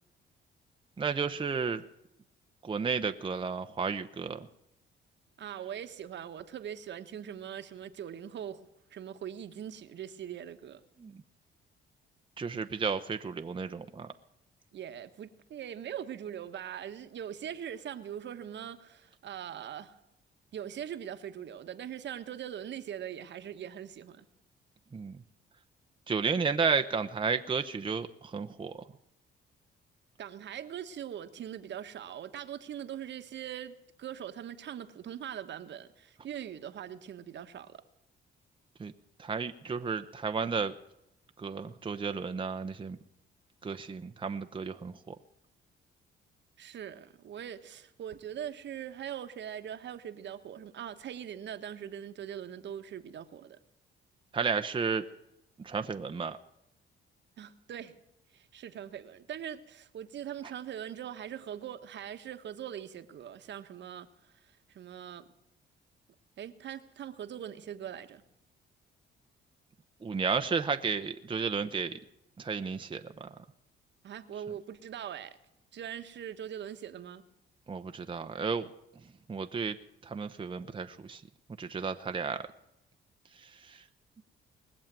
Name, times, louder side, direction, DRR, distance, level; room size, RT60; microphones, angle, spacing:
voice 1, 1.0-1.8 2.6-4.5 11.0-11.1 12.4-14.1 24.9-25.2 26.1-28.8 38.8-38.9 39.2-40.7 41.4-43.0 43.6-45.1 54.3-55.0 55.6-56.4 70.0-72.0 72.4-73.3 77.7-78.7 79.3-79.8 80.0-81.2 81.6-82.4 83.4-83.8, right 5 dB, 25° right, 0.8 m, -32 dB
voice 2, 5.4-8.6 8.9-10.8 14.7-20.0 20.5-24.3 30.2-37.8 46.6-53.6 57.4-57.9 58.3-64.1 64.5-65.3 66.4-68.2 74.0-75.4 75.7-77.2, right 9 dB, 65° right, 1.3 m, -41 dB
20.5 x 7.4 x 9.0 m
cardioid pair, 90°, 20 cm